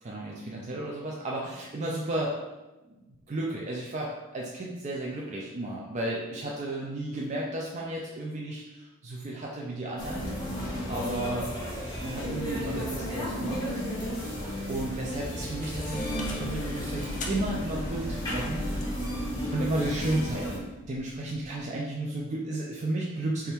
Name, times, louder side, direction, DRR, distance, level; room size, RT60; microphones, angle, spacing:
voice 1, 0.0-2.4 3.1-10.3 10.9-11.5 12.0-13.6 14.7-23.5, right 1 dB, 30° right, -3 dB, 0.4 m, -33 dB
sound 1, 10.0-20.6, equal, 20° left, 1.3 m, -33 dB
sound 2, 15.0-21.7, left 3 dB, 35° left, 0.6 m, -46 dB
3.5 x 3.4 x 4.2 m, 1.1 s
head